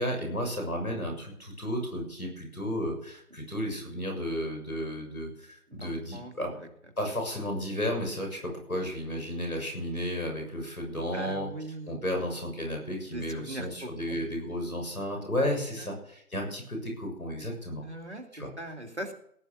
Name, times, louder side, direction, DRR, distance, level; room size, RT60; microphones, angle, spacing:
voice 1, 0.0-6.5 7.0-11.5 11.9-17.8 18.3-18.5, equal, 70° left, 3 dB, 6.8 m, -33 dB
voice 2, 5.7-6.7 7.3-7.4 11.1-12.0 13.1-14.2 15.8-16.0 17.8-18.2 18.6-19.1, right 1 dB, 45° right, 4 dB, 2.4 m, -40 dB
17.0 x 10.5 x 6.4 m, 0.70 s
figure-of-eight pair, 180°, 45 cm